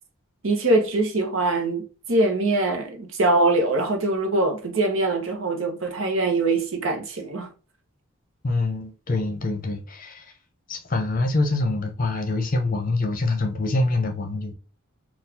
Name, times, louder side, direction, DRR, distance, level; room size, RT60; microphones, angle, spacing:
voice 1, 0.4-7.5, right 2 dB, 70° right, 0.8 m, -23 dB
voice 2, 8.4-10.3 10.7-14.5, left 2 dB, 40° left, 0.7 m, -25 dB
3.9 x 2.4 x 2.7 m
head